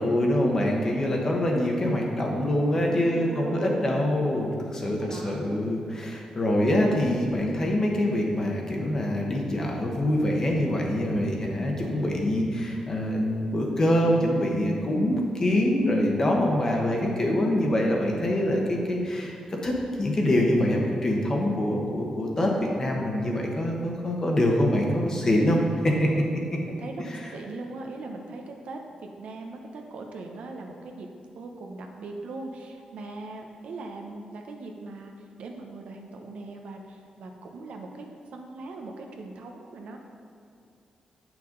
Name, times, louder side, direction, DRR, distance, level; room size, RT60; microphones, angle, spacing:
voice 1, 0.0-19.4 19.6-25.6 25.8-26.1 27.1-27.2, left 1 dB, 25° left, 0 dB, 1.0 m, -25 dB
voice 2, 3.0-4.1 4.8-5.6 26.7-31.1 31.3-35.1 35.4-38.1 38.3-40.0, right 3 dB, 75° right, 2 dB, 0.8 m, -40 dB
8.7 x 6.1 x 3.9 m, 2.6 s
wide cardioid pair, 170°, 2 cm